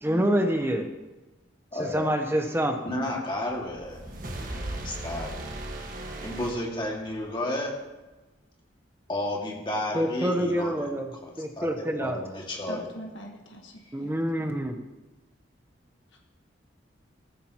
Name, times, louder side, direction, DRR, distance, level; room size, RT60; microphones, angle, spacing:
voice 1, 0.0-0.9 1.8-2.8 9.9-11.1 11.4-12.2 13.9-14.8, equal, 10° right, 5 dB, 0.9 m, -26 dB
voice 2, 1.7-2.1 2.8-4.0 4.4-5.3 6.2-7.7 9.1-10.9 11.2-12.9, left 1 dB, 25° left, -1 dB, 2.1 m, -32 dB
sound 1, 3.5-7.3, right 1 dB, 45° right, 1.6 m, -37 dB
voice 3, 12.7-13.7 14.0-14.6, equal, 75° left, 1 dB, 1.5 m, -43 dB
15.0 x 14.5 x 3.0 m, 1.1 s
head